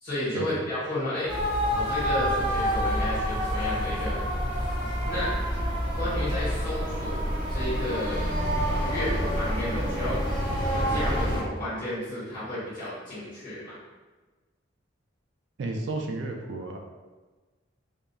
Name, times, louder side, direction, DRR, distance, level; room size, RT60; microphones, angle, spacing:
voice 1, 0.0-1.3 1.7-4.2 5.1-5.3 5.9-7.2 7.5-8.3 8.7-10.2 10.7-13.8, left 1 dB, 45° left, -11 dB, 1.3 m, -32 dB
sound 1, 1.3-11.4, equal, 25° left, 1.2 m, -27 dB
voice 2, 15.6-16.8, right 2 dB, 65° right, 2 dB, 0.3 m, -32 dB
2.7 x 2.3 x 2.3 m, 1.3 s
head